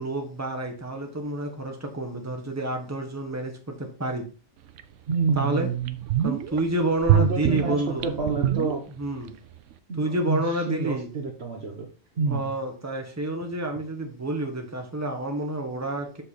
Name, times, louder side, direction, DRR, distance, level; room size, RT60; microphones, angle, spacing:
voice 1, 0.0-4.2 5.4-5.7 6.2-8.1 9.0-9.3 10.0-11.1 12.3-16.2, right 1 dB, 10° right, 3 dB, 1.3 m, -29 dB
sound 1, 4.8-4.9 5.4-5.5 5.8-6.6 7.0-9.3 9.5-9.6, right 10 dB, 70° right, 0.9 m, -24 dB
voice 2, 5.1-6.0 7.1-8.9 9.9-11.9 12.2-12.5, right 4 dB, 55° right, 4 dB, 1.2 m, -28 dB
6.6 x 5.6 x 4.2 m, 0.37 s
omnidirectional pair, 1.4 m